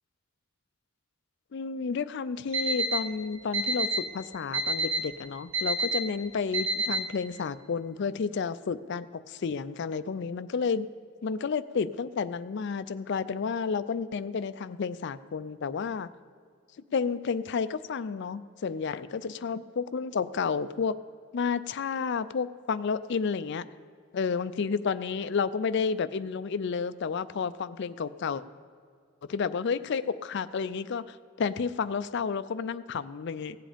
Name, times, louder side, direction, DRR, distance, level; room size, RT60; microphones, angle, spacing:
voice 1, 1.5-10.9 11.2-16.1 16.9-20.9 21.3-23.7 24.1-28.4 29.3-33.6, left 5 dB, 55° left, 14 dB, 0.4 m, -31 dB
Alarm, 2.5-3.0 3.5-4.0 4.5-5.0 5.5-6.0 6.5-7.0, right 3 dB, 85° right, 1.8 m, -27 dB
17.0 x 7.6 x 5.1 m, 2.2 s
head